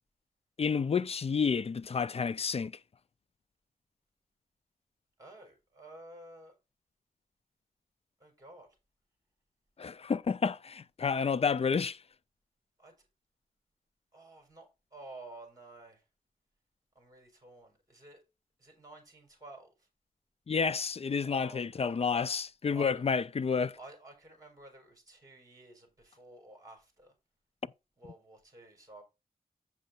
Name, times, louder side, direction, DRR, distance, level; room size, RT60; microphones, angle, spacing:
voice 1, 0.6-2.7 9.8-12.0 20.5-23.8, left 5 dB, 40° left, 0.4 m, -30 dB
voice 2, 5.2-6.5 8.2-8.8 12.8-13.1 14.1-16.0 16.9-18.2 18.6-19.9 21.2-22.3 22.7-23.1 23.7-27.1 28.0-29.0, right 2 dB, 25° right, 4.4 m, -52 dB
8.0 x 6.3 x 4.3 m
wide cardioid pair, 115°, 15 cm